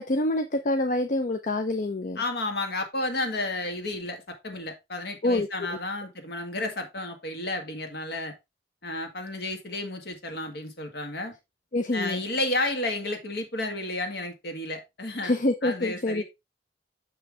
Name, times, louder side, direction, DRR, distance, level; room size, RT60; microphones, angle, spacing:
voice 1, 0.0-2.2 5.2-5.5 11.7-12.2 15.2-16.2, left 1 dB, 45° left, 0.7 m, -26 dB
voice 2, 2.2-8.3 8.8-11.3 11.9-15.3 15.6-16.2, left 2 dB, 60° left, 1.8 m, -32 dB
6.9 x 5.8 x 3.4 m
head